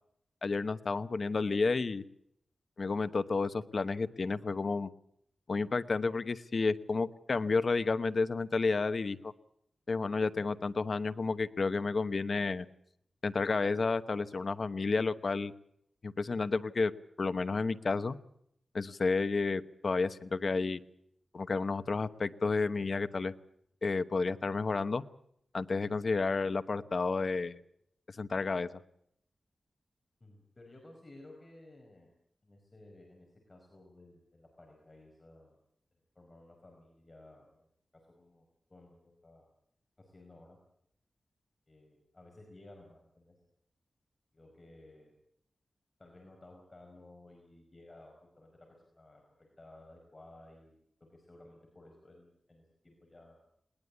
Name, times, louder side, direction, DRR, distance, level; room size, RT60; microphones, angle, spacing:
voice 1, 0.4-2.0 2.8-4.9 5.5-9.3 9.9-12.7 13.2-15.5 16.0-16.9 17.2-18.2 18.7-20.8 21.3-23.3 23.8-25.0 25.5-27.6 28.2-28.7, left 4 dB, 50° left, 12 dB, 1.0 m, -31 dB
voice 2, 30.2-32.1 32.4-35.6 36.1-37.7 38.1-39.5 40.0-40.6 41.7-43.3 44.3-45.1 46.0-53.4, left 2 dB, 30° left, 1 dB, 5.1 m, -56 dB
20.5 x 19.5 x 8.4 m, 0.72 s
wide cardioid pair, 140°, 0 cm